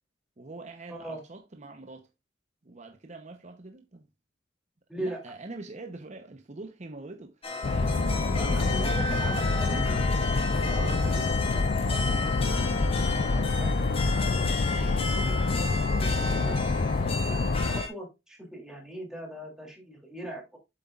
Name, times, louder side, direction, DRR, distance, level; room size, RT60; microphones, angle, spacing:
voice 1, 0.4-2.1 2.6-4.1 4.9-7.5 7.8-9.2 10.6-11.0 14.7-15.2, right 2 dB, 40° right, 0.8 m, -44 dB
voice 2, 0.9-1.2 4.9-5.2 8.4-10.0 10.4-12.2 12.5-13.8 15.2-16.6 17.0-20.6, right 1 dB, 5° right, 2.8 m, -41 dB
sound 1, 7.4-17.9, left 3 dB, 30° left, 1.8 m, -34 dB
sound 2, 7.6-17.8, left 3 dB, 50° left, 0.4 m, -26 dB
8.0 x 7.5 x 2.4 m
head